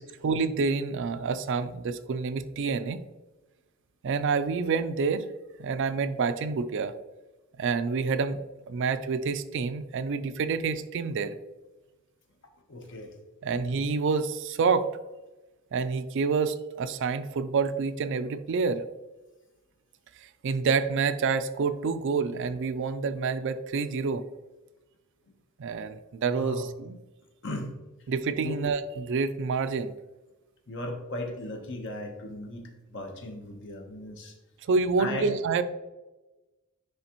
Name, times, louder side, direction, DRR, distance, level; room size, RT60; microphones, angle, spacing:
voice 1, 0.2-3.0 4.0-5.3 5.6-6.9 7.6-8.4 8.7-11.4 13.4-14.9 15.7-18.8 20.4-24.2 25.6-27.0 28.1-29.9 34.6-35.6, right 5 dB, 55° right, 11 dB, 0.4 m, -28 dB
voice 2, 12.7-13.1 25.3-25.4 26.2-26.7 27.4-27.7 28.4-28.6 30.7-34.3 35.0-35.3, left 1 dB, 55° left, 4 dB, 1.0 m, -37 dB
9.8 x 3.5 x 2.9 m, 1.1 s
head